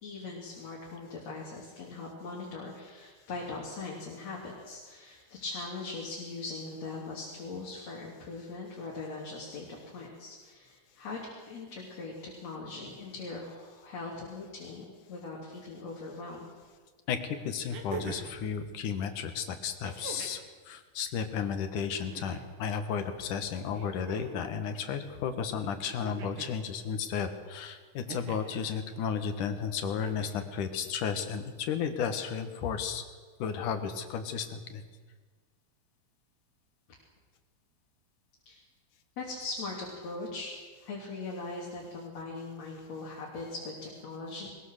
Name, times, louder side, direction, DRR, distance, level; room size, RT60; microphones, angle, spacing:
voice 1, 0.0-16.4 38.5-38.6 39.2-40.5 40.8-44.5, left 3 dB, 60° left, -3 dB, 4.2 m, -40 dB
sound 1, 16.6-16.7 17.7-18.4 19.8-20.5 21.8-22.5 23.7-24.5 25.9-26.6 28.1-28.6 29.9-30.5 31.8-31.9, right 6 dB, 80° right, 3.5 m, -43 dB
voice 2, 17.4-20.4 20.7-33.0 33.4-34.8, left 7 dB, 80° left, 8 dB, 3.0 m, -33 dB
21.0 x 21.0 x 6.6 m, 1.4 s
omnidirectional pair, 3.5 m